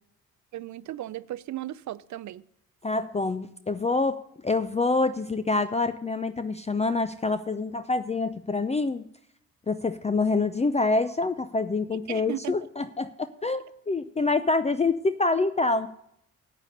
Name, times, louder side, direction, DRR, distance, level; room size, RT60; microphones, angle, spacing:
voice 1, 0.5-2.4 12.1-12.5, right 14 dB, 55° right, 0.5 m, -36 dB
voice 2, 2.8-9.0 9.7-15.9, left 3 dB, 20° left, 0.6 m, -26 dB
9.6 x 8.6 x 6.6 m
hypercardioid pair, 50°, 36 cm